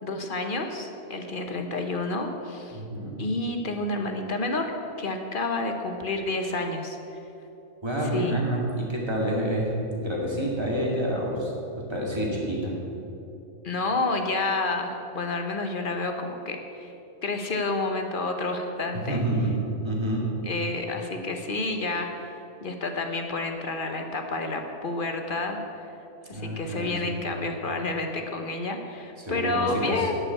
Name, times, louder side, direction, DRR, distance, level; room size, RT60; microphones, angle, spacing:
voice 1, 0.0-2.8 3.2-4.7 5.0-7.0 8.1-8.4 13.6-16.9 17.2-19.2 20.5-22.3 22.6-25.6 26.3-30.2, left 2 dB, 45° left, 4 dB, 1.0 m, -29 dB
voice 2, 2.7-3.1 7.8-12.8 19.1-20.3 26.3-27.2 29.2-30.1, right 1 dB, 20° right, -3 dB, 2.1 m, -28 dB
11.5 x 5.8 x 8.2 m, 2.8 s
omnidirectional pair, 1.3 m